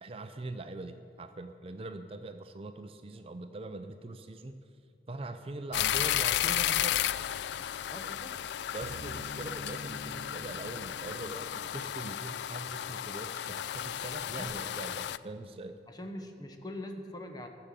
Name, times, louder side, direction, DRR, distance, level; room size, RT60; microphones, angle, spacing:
voice 1, 0.0-4.6 5.1-7.0 8.7-15.8, right 2 dB, 35° right, 8 dB, 0.5 m, -42 dB
sound 1, 5.7-15.2, left 11 dB, 75° left, 0.3 m, -33 dB
voice 2, 7.8-8.3 14.3-14.5 15.9-17.5, left 1 dB, 25° left, 5 dB, 1.0 m, -42 dB
sound 2, 8.8-13.9, equal, 55° right, 1.2 m, -49 dB
14.0 x 6.8 x 7.4 m, 2.6 s
head